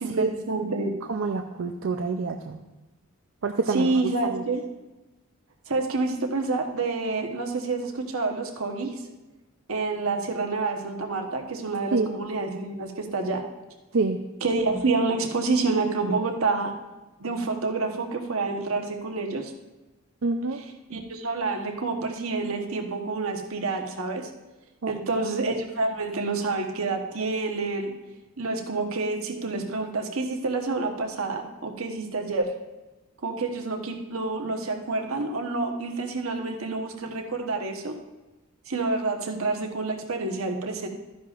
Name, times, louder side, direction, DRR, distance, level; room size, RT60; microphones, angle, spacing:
voice 1, 0.0-0.9 3.7-4.6 5.7-8.9 9.7-13.4 14.4-16.7 17.2-19.5 20.6-20.7 20.9-24.3 24.9-27.9 28.4-32.5 33.2-37.9 38.7-40.9, right 3 dB, 85° right, 4 dB, 1.1 m, -28 dB
voice 2, 1.1-2.6 3.4-4.4 11.9-12.1 13.9-14.2 20.2-20.6 24.8-24.9, right 3 dB, 65° right, 4 dB, 0.5 m, -27 dB
13.0 x 10.5 x 2.5 m, 1.1 s
head